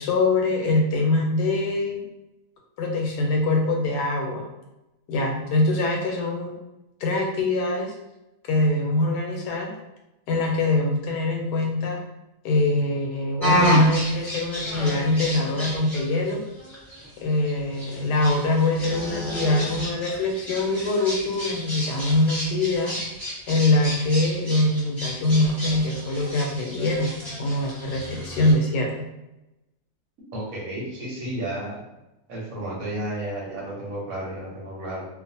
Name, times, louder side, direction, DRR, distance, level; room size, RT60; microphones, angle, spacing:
voice 1, 0.0-2.0 2.8-4.5 5.1-6.6 7.0-7.9 8.5-9.7 10.3-12.0 12.4-16.4 17.2-23.0 23.5-29.1, left 2 dB, 80° left, 0 dB, 1.1 m, -23 dB
sound 1, 13.4-28.5, right 1 dB, ahead, 0.8 m, -31 dB
voice 2, 30.3-31.8 32.3-35.1, right 1 dB, 65° right, -4 dB, 1.1 m, -32 dB
2.5 x 2.4 x 2.6 m, 0.95 s
omnidirectional pair, 1.8 m